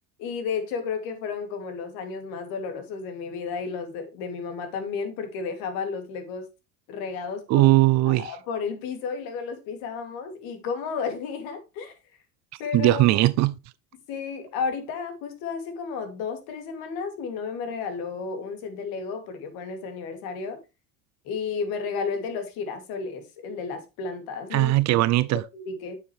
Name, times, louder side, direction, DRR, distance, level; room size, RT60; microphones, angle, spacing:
voice 1, 0.2-6.5 6.9-7.7 8.1-12.0 12.6-13.3 14.1-20.6 21.2-24.7 25.3-26.0, left 5 dB, 65° left, 2.8 m, -32 dB
voice 2, 7.5-8.3 12.7-13.6 24.5-25.4, right 17 dB, 45° right, 0.5 m, -19 dB
9.4 x 6.8 x 3.3 m
supercardioid pair, 125°, 38 cm